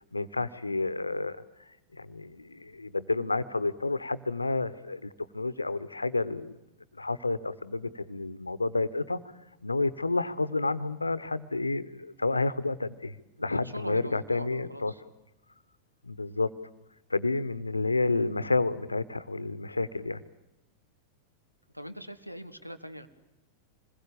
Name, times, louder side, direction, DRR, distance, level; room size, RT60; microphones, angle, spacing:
voice 1, 0.1-6.6 6.9-9.2 9.6-14.9 16.0-16.5 17.1-20.2, left 3 dB, 80° left, 15 dB, 0.9 m, -30 dB
voice 2, 13.4-15.0 21.7-23.1, equal, 90° right, 11 dB, 1.3 m, -41 dB
26.5 x 20.5 x 8.7 m, 0.97 s
figure-of-eight pair, 90°, 0 cm